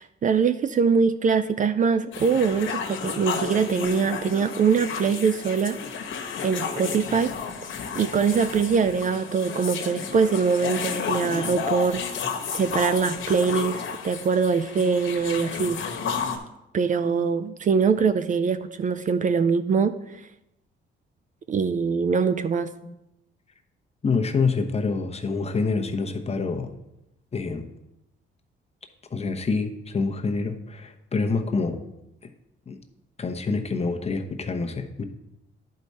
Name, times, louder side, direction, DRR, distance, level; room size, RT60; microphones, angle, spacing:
voice 1, 0.0-5.8 6.4-7.3 8.0-15.8 16.7-20.2 21.5-22.7, right 5 dB, 40° right, 11 dB, 0.4 m, -23 dB
sound 1, 2.1-16.4, left 6 dB, 75° left, 1.2 m, -32 dB
voice 2, 15.3-15.7 17.0-17.5 19.4-19.9 22.0-22.5 22.8-22.9 24.0-26.7 27.3-27.6 29.1-31.8 32.7-32.8 33.2-35.0, left 4 dB, 30° left, 4 dB, 0.9 m, -27 dB
10.5 x 4.7 x 4.1 m, 0.88 s
cardioid pair, 90°, 20 cm